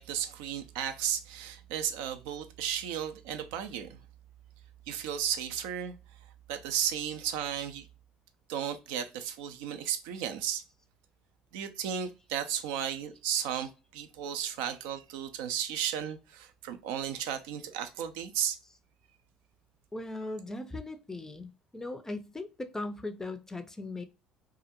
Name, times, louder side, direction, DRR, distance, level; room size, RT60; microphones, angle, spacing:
voice 1, 0.0-4.0 4.9-5.9 6.5-7.9 8.5-10.6 11.5-18.6, right 9 dB, 70° right, 0.4 m, -34 dB
voice 2, 19.9-24.1, left 2 dB, 15° left, 0.4 m, -38 dB
2.4 x 2.0 x 2.8 m
hypercardioid pair, 60°, 3 cm